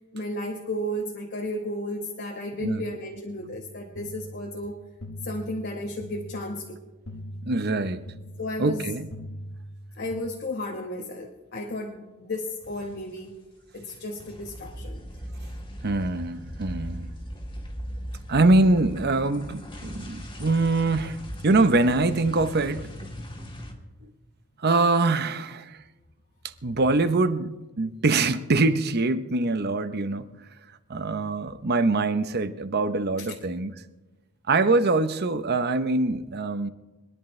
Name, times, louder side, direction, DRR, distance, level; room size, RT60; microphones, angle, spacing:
voice 1, 0.1-4.8 5.2-6.8 8.4-8.9 10.0-13.3 13.7-15.0 33.2-33.3, left 1 dB, 50° left, 1.4 m, -33 dB
sound 1, 3.4-10.2, equal, 70° left, 1.4 m, -42 dB
voice 2, 7.5-8.0 8.6-9.1 15.8-17.1 18.3-21.2 21.4-22.8 24.6-25.8 26.6-30.3 30.9-33.7 34.5-36.7, right 2 dB, 50° right, 0.8 m, -23 dB
sound 2, 12.6-13.4 13.7-23.7, equal, 25° left, 2.0 m, -39 dB
25.5 x 10.5 x 3.3 m
head